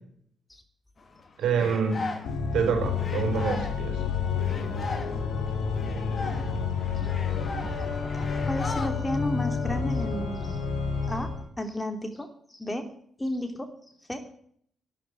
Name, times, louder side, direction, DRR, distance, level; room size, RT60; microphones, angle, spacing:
sound 1, 1.0-2.6 2.9-8.9, left 3 dB, 40° left, 2.8 m, -37 dB
voice 1, 1.4-2.0 2.5-4.0, right 6 dB, 60° right, 5 dB, 4.6 m, -26 dB
Organ, 2.2-11.4, left 5 dB, 60° left, 3.7 m, -29 dB
voice 2, 8.4-10.6 11.0-11.3 11.6-12.9 13.2-13.7 14.1-14.3, left 1 dB, 15° left, 7 dB, 2.8 m, -33 dB
13.0 x 11.5 x 9.2 m, 0.63 s
figure-of-eight pair, 40°, 0 cm